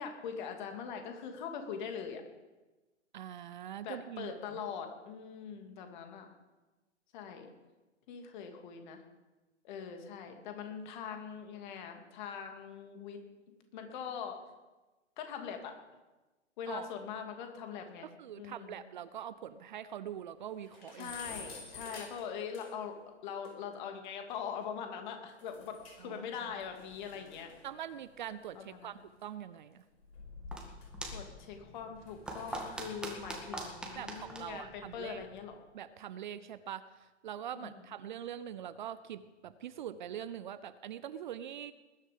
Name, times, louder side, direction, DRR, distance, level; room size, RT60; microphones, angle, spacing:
voice 1, 0.0-2.2 3.8-6.3 7.1-7.5 8.1-9.0 9.6-13.2 13.7-14.4 15.2-15.8 16.6-18.1 18.4-18.8 20.9-23.0 23.2-27.5 28.5-29.0 31.1-35.5 37.6-37.8, left 7 dB, 40° left, 5 dB, 2.5 m, -42 dB
voice 2, 3.1-4.3 16.7-16.9 18.2-21.1 26.0-26.5 27.6-29.8 33.9-35.2 35.7-36.8 37.2-41.7, right 10 dB, 40° right, 14 dB, 0.6 m, -43 dB
sound 1, 18.6-18.7 19.1-19.2 19.5-19.6 19.9-20.0 20.4-23.0 23.4-23.5 25.4-26.2 26.4-29.1 29.9-31.5 32.0-32.8, left 3 dB, 55° left, 5.3 m, -50 dB
sound 2, 30.1-35.5, right 1 dB, ahead, 2.0 m, -45 dB
20.0 x 10.5 x 5.2 m, 1.1 s
figure-of-eight pair, 120°, 36 cm